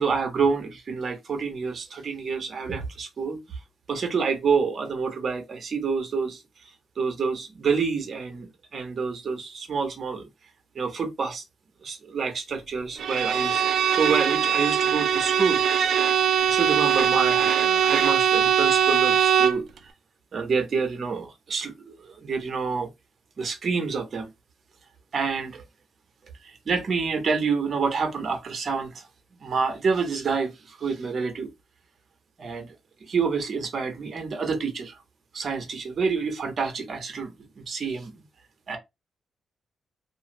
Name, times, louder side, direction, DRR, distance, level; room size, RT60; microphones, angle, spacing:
voice 1, 0.0-3.4 3.9-6.4 7.0-10.3 10.7-11.4 11.8-15.6 16.5-19.6 20.3-22.9 23.4-24.3 25.1-25.6 26.4-29.1 29.4-31.5 32.4-32.7 33.0-35.0 35.3-38.2 38.7-38.8, right 5 dB, 45° right, 0.9 m, -28 dB
Bowed string instrument, 13.0-19.7, right 8 dB, 65° right, 0.3 m, -21 dB
2.5 x 2.3 x 3.0 m
cardioid pair, 140°, 0 cm